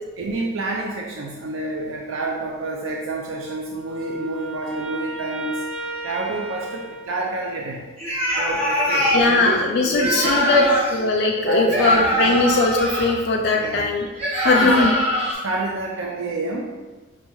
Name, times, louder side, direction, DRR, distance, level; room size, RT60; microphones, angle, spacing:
voice 1, 0.2-5.6 6.0-8.0 8.4-10.7 11.4-12.5 13.6-13.8 14.4-15.0 15.4-16.7, right 3 dB, 80° right, -1 dB, 0.4 m, -29 dB
Wind instrument woodwind instrument, 3.4-7.8, right 1 dB, 60° right, 0.8 m, -34 dB
sound 1, 8.0-9.3 9.9-11.0 11.7-13.1 14.2-15.3, equal, 30° right, 1.0 m, -22 dB
voice 2, 9.1-14.1 14.4-14.9, left 3 dB, 55° left, 0 dB, 0.3 m, -19 dB
5.3 x 2.3 x 3.0 m, 1.3 s
head